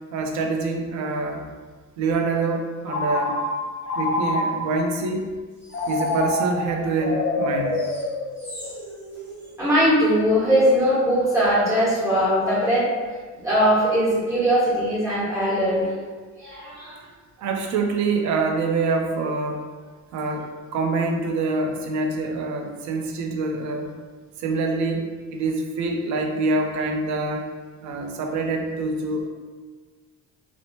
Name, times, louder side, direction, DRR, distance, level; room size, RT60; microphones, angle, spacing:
voice 1, 0.1-1.4 2.0-3.4 4.0-5.2 5.9-7.8 17.4-19.6 20.1-23.9 24.4-27.5 27.8-29.3, right 3 dB, 65° right, 3 dB, 0.5 m, -25 dB
Telephone, 2.9-4.9 5.7-8.8, left 1 dB, 45° left, 0.6 m, -26 dB
sound 1, 5.6-6.2 7.7-9.5, right 1 dB, 5° left, 1.2 m, -40 dB
voice 2, 9.6-12.9 13.4-15.9 16.4-17.0, equal, 10° right, -11 dB, 1.4 m, -20 dB
3.0 x 2.0 x 2.7 m, 1.4 s
cardioid pair, 130°, 31 cm